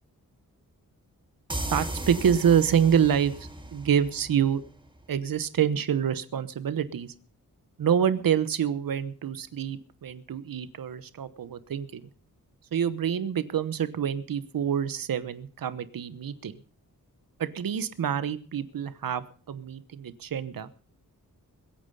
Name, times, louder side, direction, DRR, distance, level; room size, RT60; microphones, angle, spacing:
sound 1, 1.5-5.0, right 1 dB, 15° right, 1.9 m, -36 dB
voice 1, 1.7-4.6 5.1-7.1 7.8-12.0 12.7-16.6 17.4-20.7, right 8 dB, 75° right, 13 dB, 1.1 m, -27 dB
22.0 x 8.9 x 5.5 m, 0.41 s
wide cardioid pair, 135°, 34 cm